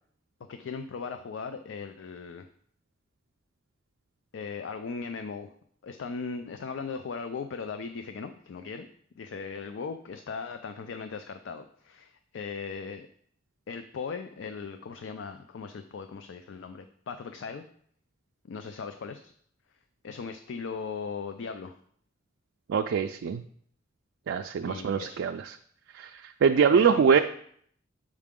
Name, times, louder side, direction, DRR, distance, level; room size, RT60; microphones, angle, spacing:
voice 1, 0.5-2.5 4.3-5.5 5.8-8.9 9.2-13.1 13.7-17.6 18.4-19.3 20.0-21.8 24.7-25.2 26.7-27.2, left 5 dB, 70° left, 8 dB, 0.4 m, -38 dB
voice 2, 22.7-23.4 24.3-25.6 25.9-27.2, right 6 dB, 70° right, 5 dB, 0.3 m, -24 dB
7.4 x 4.8 x 3.6 m, 0.63 s
head